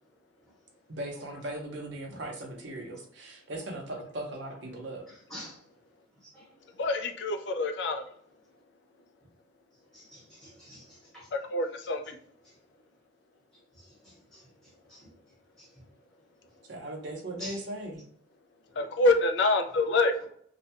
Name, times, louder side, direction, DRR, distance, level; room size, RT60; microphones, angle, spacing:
voice 1, 0.9-5.1 16.7-18.0, right 1 dB, 65° right, 0.7 m, -38 dB
voice 2, 6.8-8.0 11.3-12.2 18.8-20.1, left 2 dB, 60° left, 0.4 m, -26 dB
voice 3, 9.9-11.3 13.7-14.4 14.9-15.1 15.6-15.7 17.4-17.6 18.7-18.9, equal, ahead, 1.0 m, -47 dB
2.5 x 2.2 x 2.8 m
head